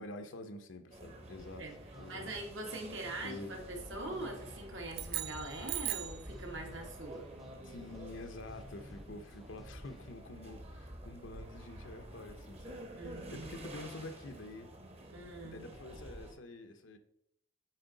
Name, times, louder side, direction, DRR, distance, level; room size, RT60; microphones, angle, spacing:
voice 1, 0.0-1.7 2.0-2.3 3.2-3.5 7.6-14.7 15.4-17.0, left 2 dB, 75° left, 6 dB, 0.8 m, -48 dB
sound 1, 0.9-16.3, right 1 dB, 35° right, 1.0 m, -49 dB
sound 2, 1.4-10.1, equal, ahead, 0.5 m, -56 dB
voice 2, 2.1-7.2 13.0-13.6 15.1-15.7, right 2 dB, 70° right, 1 dB, 1.6 m, -43 dB
sound 3, 4.9-6.3, right 14 dB, 50° right, 0.3 m, -38 dB
8.5 x 4.4 x 3.9 m, 0.76 s
head